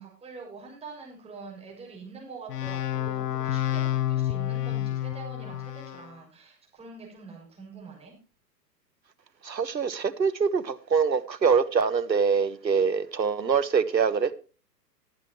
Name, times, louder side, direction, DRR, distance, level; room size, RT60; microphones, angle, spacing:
voice 1, 0.0-8.1, right 4 dB, 10° right, 6.4 m, -45 dB
sound 1, 2.5-6.1, left 12 dB, 70° left, 0.6 m, -29 dB
voice 2, 9.4-14.3, right 6 dB, 80° right, 1.3 m, -24 dB
20.5 x 9.3 x 3.0 m
figure-of-eight pair, 115°, 50 cm